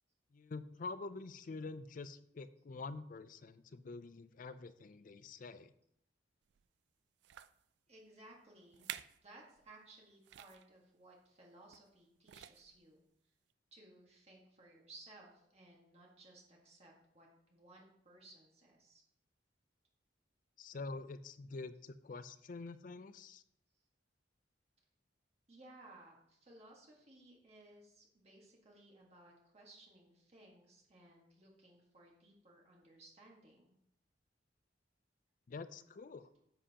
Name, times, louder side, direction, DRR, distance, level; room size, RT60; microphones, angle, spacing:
voice 1, 0.3-5.7 20.6-23.4 35.5-36.3, left 3 dB, 45° left, 13 dB, 0.4 m, -47 dB
sound 1, 6.5-6.7 7.2-7.6 8.3-8.4 8.7-9.2 9.6-9.7 10.2-10.7 11.7-12.0 12.2-12.8 13.5-13.6, right 11 dB, 65° right, 0.3 m, -49 dB
voice 2, 7.9-8.9 9.2-13.3 13.7-19.0 25.5-33.7, right 2 dB, 35° right, -2 dB, 1.6 m, -60 dB
9.8 x 7.6 x 2.9 m, 0.74 s
head